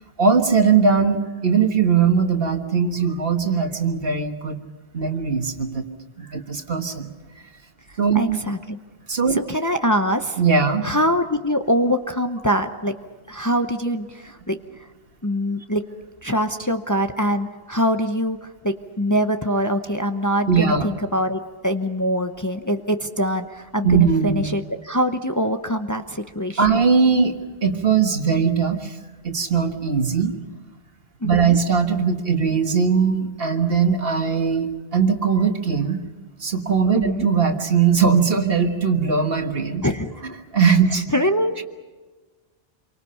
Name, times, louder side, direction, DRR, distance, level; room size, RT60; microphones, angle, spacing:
voice 1, 0.2-4.6 4.9-5.8 6.2-7.1 8.0-8.4 9.1-9.4 10.4-10.8 20.5-20.9 23.8-24.5 26.6-27.3 27.6-28.9 29.2-30.3 31.2-36.0 36.4-39.8 40.5-41.1, right 6 dB, 65° right, 5 dB, 1.8 m, -20 dB
voice 2, 8.1-8.8 9.3-10.4 10.8-13.0 13.3-14.6 15.2-15.8 16.2-26.8 31.2-31.6 36.9-37.3 39.8-40.1 41.1-41.6, equal, 20° left, 6 dB, 0.8 m, -23 dB
28.0 x 24.0 x 5.7 m, 1.3 s
omnidirectional pair, 1.0 m